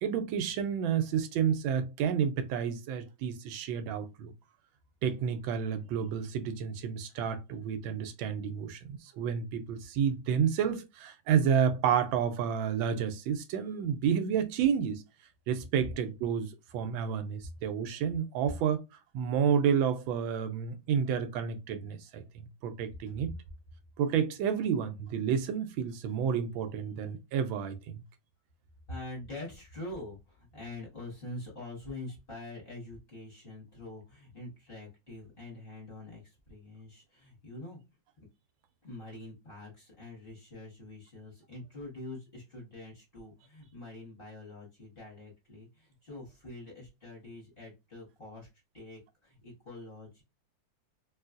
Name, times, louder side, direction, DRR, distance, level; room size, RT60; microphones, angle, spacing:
voice 1, 0.0-4.3 5.0-15.0 15.5-18.8 19.1-23.3 24.0-28.0, right 7 dB, 80° right, 1.3 m, -30 dB
voice 2, 28.9-37.8 38.2-38.3 38.8-50.2, left 2 dB, 30° left, 1.2 m, -45 dB
3.1 x 3.0 x 2.4 m
omnidirectional pair, 2.1 m